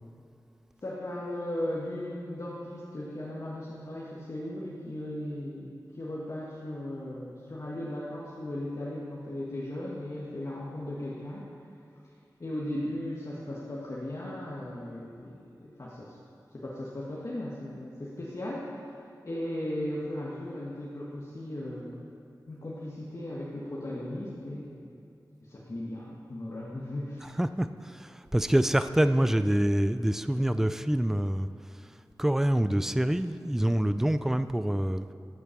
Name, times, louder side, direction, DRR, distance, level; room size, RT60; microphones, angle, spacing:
voice 1, 0.8-11.5 12.4-16.2 16.5-18.8 19.2-22.1 22.5-24.9 25.4-27.3 29.2-29.3, left 1 dB, 45° left, -6 dB, 1.7 m, -37 dB
voice 2, 27.4-31.5 32.2-35.0, right 1 dB, 5° right, 12 dB, 0.4 m, -26 dB
14.0 x 8.3 x 6.0 m, 2.6 s
wide cardioid pair, 100°, 7 cm